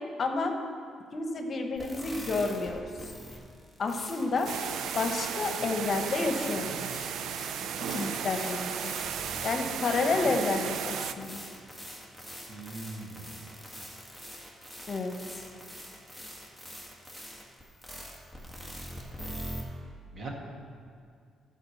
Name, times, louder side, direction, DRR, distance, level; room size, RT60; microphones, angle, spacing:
voice 1, 0.2-0.5 1.1-3.1 3.8-4.5 4.9-7.1 7.9-8.9 9.4-11.4 14.9-15.1, left 3 dB, 45° left, 4 dB, 1.1 m, -30 dB
sound 1, 1.8-19.6, equal, 10° right, 1.8 m, -44 dB
sound 2, 4.5-11.1, right 8 dB, 75° right, 0.4 m, -35 dB
voice 2, 12.5-13.3 20.1-20.3, right 3 dB, 55° right, 0 dB, 1.8 m, -40 dB
11.5 x 5.1 x 7.1 m, 2.2 s
cardioid pair, 90°, 0 cm